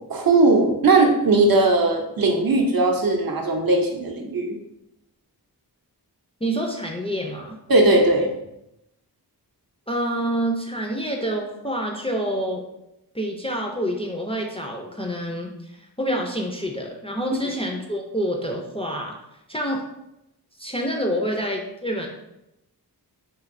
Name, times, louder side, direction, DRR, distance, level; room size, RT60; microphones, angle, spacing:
voice 1, 0.1-4.5 7.7-8.3, right 2 dB, 60° right, 2 dB, 0.6 m, -18 dB
voice 2, 6.4-7.6 9.9-12.6 13.1-19.1 19.5-19.8 20.6-22.1, equal, 15° left, 0 dB, 0.3 m, -27 dB
3.1 x 2.6 x 2.5 m, 0.86 s
wide cardioid pair, 65°, 40 cm